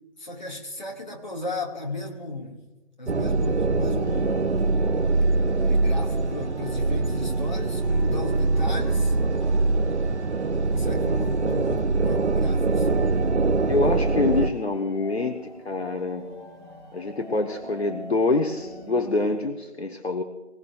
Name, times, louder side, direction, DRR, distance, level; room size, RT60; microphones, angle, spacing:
voice 1, 0.2-2.6 3.0-4.4 5.6-9.2 10.7-13.0, left 2 dB, 40° left, -1 dB, 2.0 m, -35 dB
sound 1, 3.1-14.5, right 3 dB, 65° right, 0.8 m, -23 dB
sound 2, 4.0-19.4, equal, 40° right, 2.4 m, -45 dB
voice 2, 13.7-15.3 15.6-16.2 16.9-20.2, left 3 dB, 60° left, 4 dB, 1.3 m, -25 dB
24.0 x 16.5 x 2.3 m, 1.1 s
figure-of-eight pair, 175°, 37 cm